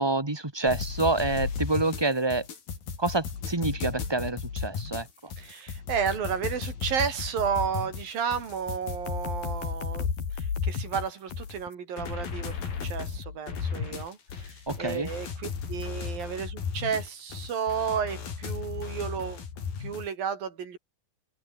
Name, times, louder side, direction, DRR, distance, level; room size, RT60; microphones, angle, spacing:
voice 1, 0.0-2.5 3.0-5.3 14.7-15.1, right 2 dB, 10° right, 1.6 m, -27 dB
sound 1, 0.7-20.1, left 6 dB, 80° left, 6.1 m, -34 dB
voice 2, 5.4-10.1 10.3-19.4 19.8-20.8, right 7 dB, 75° right, 5.2 m, -32 dB
omnidirectional pair, 4.1 m